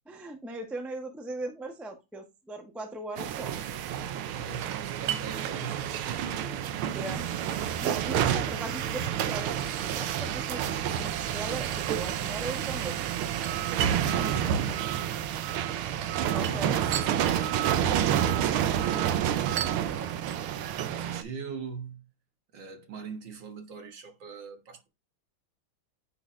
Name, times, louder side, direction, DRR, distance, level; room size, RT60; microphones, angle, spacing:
voice 1, 0.1-3.6 6.3-6.6 6.9-7.2 7.8-10.7 11.0-13.0 16.3-16.8, right 2 dB, ahead, 0.5 m, -39 dB
sound 1, 3.2-21.2, right 10 dB, 80° right, 1.5 m, -29 dB
voice 2, 4.3-6.4 14.0-14.9 16.2-20.2 20.7-22.1 22.5-24.9, right 5 dB, 60° right, 2.0 m, -42 dB
9.3 x 4.3 x 2.6 m
omnidirectional pair, 2.3 m